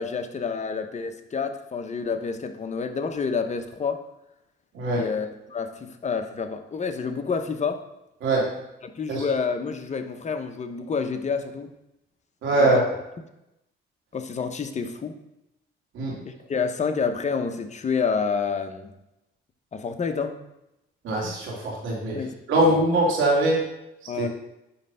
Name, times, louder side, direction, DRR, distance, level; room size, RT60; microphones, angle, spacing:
voice 1, 0.0-4.0 5.0-7.8 8.9-11.7 12.5-12.7 14.1-15.2 16.3-18.9 19.7-20.4 22.1-22.4 22.7-22.8 24.1-24.3, left 5 dB, 35° left, 7 dB, 0.9 m, -28 dB
voice 2, 4.7-5.1 8.2-8.5 9.1-9.2 12.4-12.8 15.9-16.2 21.0-22.2 22.5-23.6 24.2-24.3, right 1 dB, 80° right, -3 dB, 2.7 m, -22 dB
9.8 x 3.3 x 5.5 m, 0.89 s
cardioid pair, 90°, 20 cm